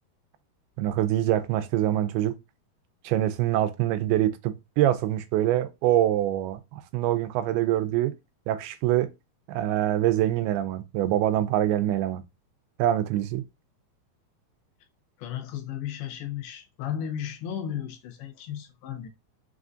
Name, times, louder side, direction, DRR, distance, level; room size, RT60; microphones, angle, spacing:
voice 1, 0.8-2.3 3.0-8.1 8.5-9.1 9.5-12.2 12.8-13.4, right 13 dB, 85° right, 2.5 m, -25 dB
voice 2, 15.2-19.1, left 9 dB, 85° left, 2.8 m, -34 dB
6.0 x 2.5 x 2.4 m
omnidirectional pair, 4.5 m